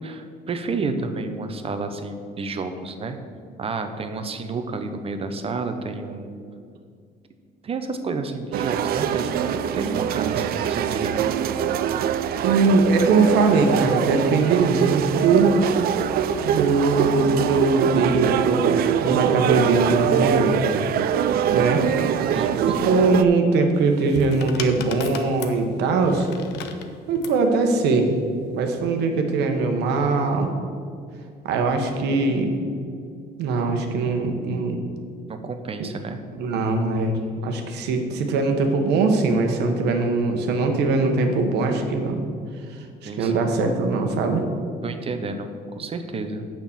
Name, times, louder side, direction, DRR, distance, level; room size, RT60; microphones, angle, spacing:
voice 1, 0.0-3.2 3.6-6.3 7.6-11.3 22.3-23.1 35.3-36.2 43.0-43.3 44.8-46.4, right 3 dB, 35° right, 8 dB, 0.8 m, -30 dB
sound 1, 8.5-23.2, right 9 dB, 65° right, 0.5 m, -23 dB
voice 2, 12.4-15.6 16.4-20.6 21.5-21.8 22.7-26.3 27.1-28.1 28.5-30.5 31.4-32.5 33.4-34.8 35.8-35.9 36.4-37.1 37.4-42.2 43.0-44.4, right 3 dB, 80° right, 4 dB, 1.2 m, -21 dB
sound 2, 23.7-27.4 28.5-28.8, left 6 dB, 85° left, 0.8 m, -35 dB
7.0 x 6.0 x 7.2 m, 2.3 s
cardioid pair, 110°, 17 cm